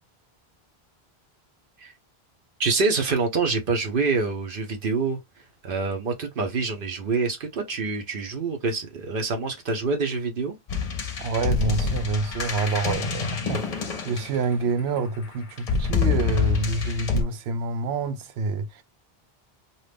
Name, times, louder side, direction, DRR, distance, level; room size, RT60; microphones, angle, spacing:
voice 1, 2.6-5.2 5.6-10.5, right 4 dB, 60° right, 0.8 m, -26 dB
sound 1, 10.7-14.8 15.6-17.2, left 5 dB, 45° left, 0.6 m, -26 dB
voice 2, 11.2-18.8, right 4 dB, 90° right, 0.8 m, -27 dB
2.7 x 2.4 x 3.3 m
omnidirectional pair, 1.0 m